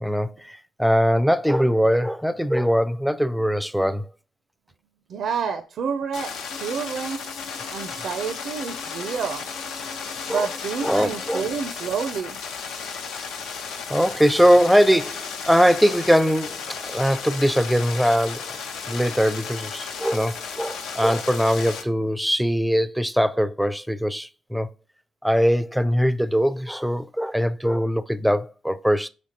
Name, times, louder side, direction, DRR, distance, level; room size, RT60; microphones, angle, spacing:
voice 1, 0.0-4.1 10.3-10.5 10.8-11.4 13.9-18.4 18.9-24.7 25.2-29.1, equal, ahead, 0.3 m, -21 dB
voice 2, 5.1-7.3 7.7-9.5 10.3-12.4, right 6 dB, 65° right, 0.4 m, -29 dB
sound 1, 6.1-21.8, left 6 dB, 90° left, 0.7 m, -34 dB
Bowed string instrument, 6.5-11.6, left 3 dB, 70° left, 1.0 m, -44 dB
5.0 x 3.4 x 2.8 m
cardioid pair, 90°, 0 cm